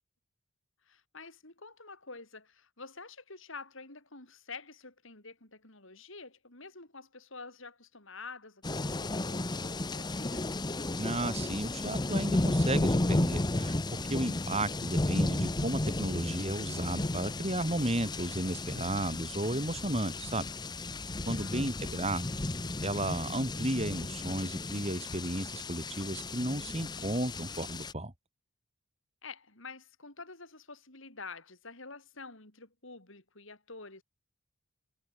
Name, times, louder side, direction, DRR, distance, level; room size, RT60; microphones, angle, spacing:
voice 1, 0.8-10.4 21.3-22.0 29.2-34.0, left 4 dB, 60° left, 4.8 m, -48 dB
sound 1, 8.6-27.9, left 2 dB, 20° left, 0.8 m, -33 dB
voice 2, 10.9-20.5 21.3-22.4 22.8-28.1, right 1 dB, 30° right, 4.1 m, -33 dB
head